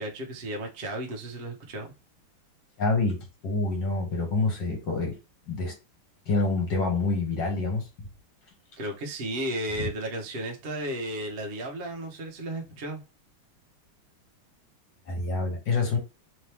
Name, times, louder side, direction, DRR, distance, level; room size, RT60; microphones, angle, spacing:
voice 1, 0.0-1.9 8.8-13.0, right 1 dB, 60° right, 0.6 m, -34 dB
voice 2, 2.8-5.2 5.5-5.7 6.3-7.9 9.8-9.9 15.1-16.0, left 3 dB, 60° left, 1.8 m, -27 dB
3.8 x 2.9 x 3.4 m
omnidirectional pair, 2.4 m